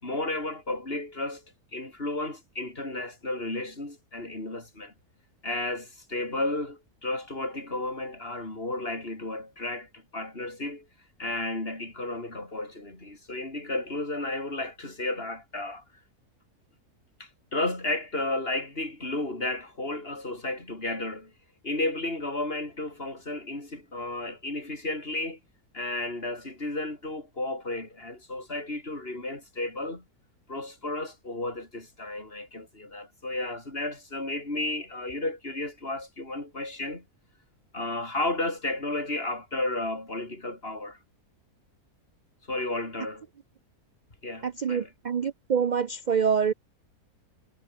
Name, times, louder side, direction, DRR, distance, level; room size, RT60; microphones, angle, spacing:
voice 1, 0.0-1.4 1.7-4.9 5.4-10.9 11.2-15.8 17.2-21.3 21.6-25.4 25.7-30.0 30.5-37.1 37.7-41.0 42.5-43.3 44.2-44.9, left 2 dB, 35° left, 5.7 m, -33 dB
voice 2, 44.4-46.5, right 6 dB, 70° right, 0.4 m, -26 dB
omnidirectional pair, 1.6 m